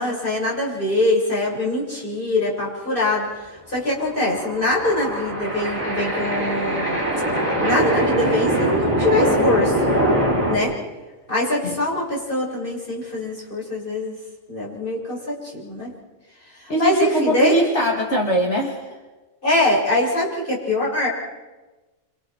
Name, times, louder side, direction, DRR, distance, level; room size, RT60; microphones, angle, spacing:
voice 1, 0.0-3.3 3.7-7.1 7.6-9.8 10.5-10.7 11.3-14.2 14.5-15.9 16.5-17.6 19.4-21.1, left 2 dB, 40° left, -5 dB, 7.5 m, -23 dB
sound 1, 4.1-10.6, right 1 dB, 30° right, 6.0 m, -22 dB
voice 2, 16.7-18.8, right 1 dB, 60° left, 0 dB, 2.7 m, -21 dB
28.5 x 27.5 x 4.6 m, 1.2 s
omnidirectional pair, 1.3 m